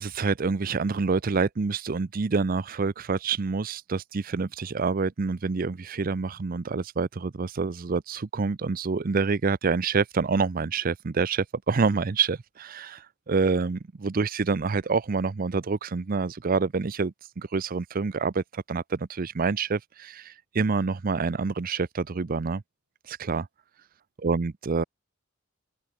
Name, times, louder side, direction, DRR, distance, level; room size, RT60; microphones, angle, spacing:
voice 1, 0.0-22.6 23.1-23.5 24.2-24.8, right 4 dB, 40° right, 0.5 m, -27 dB
open air
head